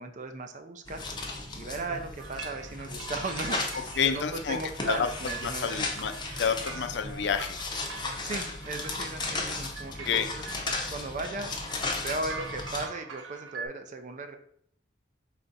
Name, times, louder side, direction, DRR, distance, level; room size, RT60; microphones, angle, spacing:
voice 1, 0.0-5.8 8.2-10.5 10.9-11.5 12.0-14.4, right 3 dB, 40° right, 7 dB, 0.5 m, -37 dB
sound 1, 0.9-12.9, left 3 dB, 25° left, 0.6 m, -36 dB
sound 2, 2.2-13.7, right 5 dB, 90° right, 0.5 m, -44 dB
voice 2, 4.0-4.6 4.9-5.1 5.4-6.1 6.4-7.6 10.0-10.3, left 7 dB, 65° left, 8 dB, 0.4 m, -28 dB
4.4 x 2.5 x 3.9 m, 0.65 s
head